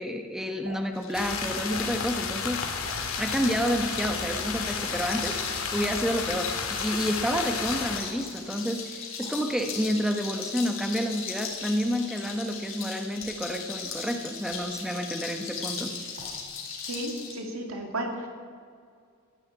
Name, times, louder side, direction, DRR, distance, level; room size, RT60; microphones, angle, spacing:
voice 1, 0.0-2.6 3.2-5.4 5.7-15.9, equal, ahead, 5 dB, 1.0 m, -29 dB
sound 1, 0.6-0.8 1.7-1.9 2.8-3.0 4.0-4.2 5.1-5.3 8.0-8.3 9.2-9.3 10.3-10.4 11.2-11.7 12.3-12.4 13.1-13.4 13.8-13.9 14.5-14.7 16.1-16.6 16.9-17.3, right 1 dB, 60° right, 4.6 m, -47 dB
sound 2, 0.9-17.4, left 5 dB, 65° left, 3.5 m, -38 dB
sound 3, 1.1-8.0, left 5 dB, 85° left, 1.9 m, -32 dB
voice 2, 16.9-18.3, right 1 dB, 85° right, 2 dB, 2.7 m, -33 dB
14.0 x 10.5 x 8.7 m, 2.1 s
head